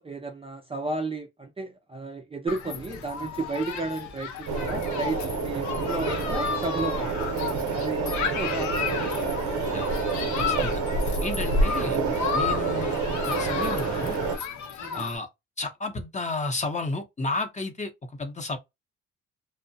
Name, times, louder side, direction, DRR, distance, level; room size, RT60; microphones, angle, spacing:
voice 1, 0.0-7.3 7.7-9.4 14.8-15.1, right 3 dB, 20° right, 0.5 m, -33 dB
Human group actions, 2.5-15.2, left 7 dB, 70° left, 0.7 m, -33 dB
sound 1, 4.5-14.4, right 4 dB, 70° right, 0.7 m, -28 dB
voice 2, 10.4-10.8 11.2-12.0 12.3-12.9 13.3-14.2 14.9-15.3 15.6-17.9 18.2-18.6, left 3 dB, 25° left, 0.7 m, -32 dB
2.7 x 2.0 x 2.6 m
cardioid pair, 90°, 30 cm